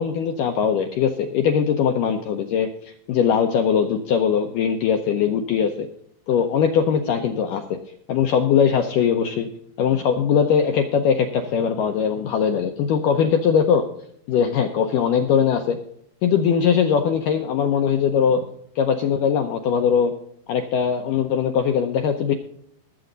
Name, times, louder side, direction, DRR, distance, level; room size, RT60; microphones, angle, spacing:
voice 1, 0.0-5.9 6.3-7.8 8.1-9.5 9.8-13.9 14.3-15.8 16.2-18.5 18.8-20.1 20.5-22.3, left 7 dB, 80° left, 6 dB, 1.9 m, -21 dB
19.5 x 7.8 x 3.9 m, 0.67 s
omnidirectional pair, 4.7 m